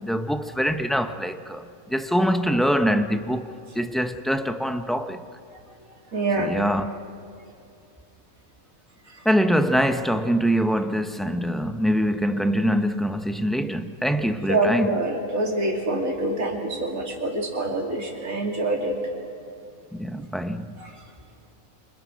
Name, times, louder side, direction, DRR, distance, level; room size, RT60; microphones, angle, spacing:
voice 1, 0.0-5.2 6.4-6.9 9.2-15.0 19.9-20.8, equal, ahead, 0.6 m, -24 dB
voice 2, 6.1-6.6 14.5-19.0 20.8-20.9, right 2 dB, 75° right, 3.4 m, -25 dB
28.5 x 26.0 x 6.3 m
omnidirectional pair, 1.5 m